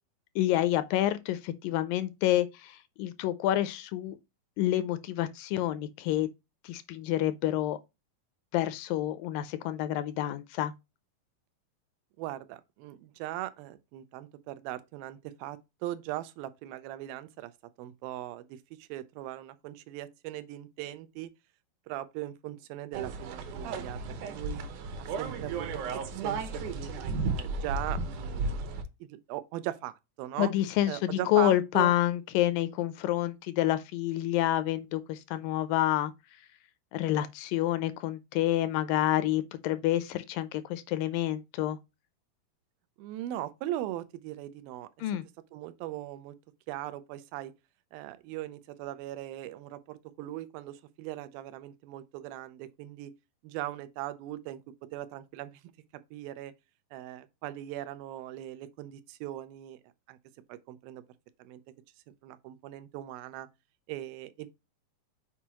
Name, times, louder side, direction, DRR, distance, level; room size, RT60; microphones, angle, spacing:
voice 1, 0.4-4.2 4.6-6.3 6.6-7.8 8.5-10.7 30.4-36.1 36.9-41.8 45.0-45.2, left 13 dB, 80° left, 2.2 m, -28 dB
voice 2, 12.2-17.5 17.8-21.3 21.9-24.7 25.0-26.9 27.2-30.5 30.9-31.9 43.0-44.9 45.5-46.4 46.7-47.5 47.9-53.1 53.4-54.6 54.9-55.6 56.1-56.5 56.9-59.8 60.1-60.2 60.5-61.0 61.4-61.6 62.2-63.5 63.9-64.5, right 14 dB, 90° right, 2.5 m, -39 dB
sound 1, 22.9-28.8, right 4 dB, 70° right, 2.2 m, -34 dB
7.2 x 4.7 x 2.9 m
omnidirectional pair, 4.1 m